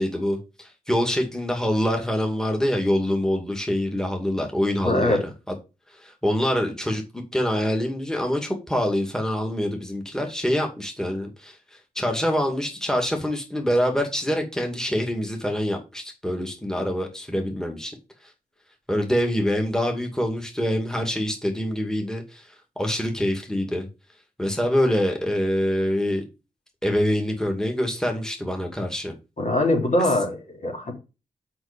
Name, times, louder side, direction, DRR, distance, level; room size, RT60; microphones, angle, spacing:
voice 1, 0.0-5.2 5.5-5.6 6.0-11.5 11.9-17.9 18.9-22.5 22.8-23.9 24.4-26.2 26.8-29.1, equal, 5° left, 2.5 m, -25 dB
voice 2, 4.8-5.2 29.4-30.9, left 1 dB, 55° left, 3.7 m, -22 dB
6.1 x 5.7 x 5.2 m
cardioid pair, 45°, 15 cm